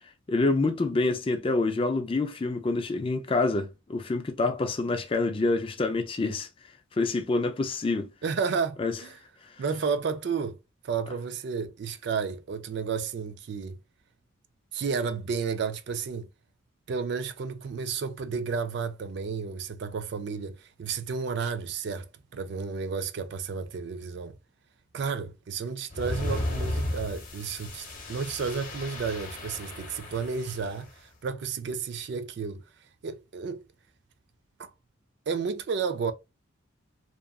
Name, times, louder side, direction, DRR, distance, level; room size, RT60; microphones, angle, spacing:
voice 1, 0.3-6.5 7.0-8.1 8.8-8.9, left 3 dB, 25° left, 0.3 m, -27 dB
voice 2, 8.2-9.2 9.6-10.6 10.8-13.8 14.7-16.3 16.9-24.4 24.9-32.6 33.0-33.7 34.6-34.7 35.3-36.1, right 5 dB, 55° right, 0.3 m, -32 dB
sound 1, 25.9-30.8, left 1 dB, 40° left, 0.9 m, -34 dB
2.9 x 2.3 x 2.2 m
head